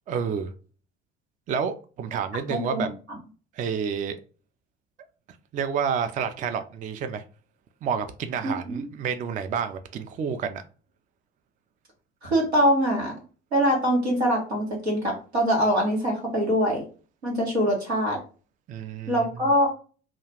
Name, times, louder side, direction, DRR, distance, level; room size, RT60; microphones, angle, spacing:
voice 1, 0.1-0.5 1.5-2.9 3.6-4.2 5.5-7.2 7.8-10.6 18.7-19.3, right 7 dB, 25° right, 0.3 m, -29 dB
voice 2, 2.5-2.9 8.4-8.8 12.2-13.1 13.5-16.8 17.2-18.2 19.1-19.7, equal, 90° right, 1.1 m, -23 dB
2.4 x 2.3 x 3.2 m
figure-of-eight pair, 55°, 32 cm